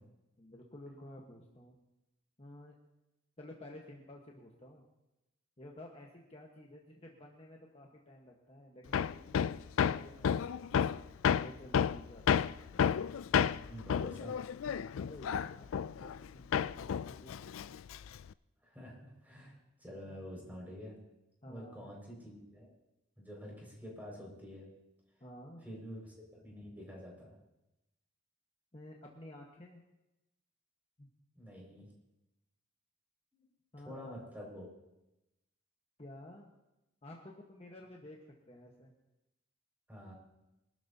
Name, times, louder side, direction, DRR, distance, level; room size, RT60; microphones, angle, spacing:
voice 1, 0.0-1.8 2.4-2.8 3.4-4.8 5.6-10.9 11.4-12.5 15.0-17.5 21.4-21.9 25.2-25.7 28.7-29.8 31.0-31.1 33.7-34.1 36.0-36.5 37.0-38.2 38.5-38.9, left 1 dB, 30° left, -1 dB, 1.4 m, -52 dB
Hammer, 8.9-16.3 16.5-18.3, left 7 dB, 85° left, 0.4 m, -31 dB
voice 2, 13.7-14.4 18.6-21.0 21.4-22.7 23.2-24.7 25.6-27.3 31.4-31.9 33.9-34.7 39.9-40.1, equal, 10° right, -3 dB, 5.7 m, -48 dB
24.5 x 12.5 x 2.9 m, 0.94 s
head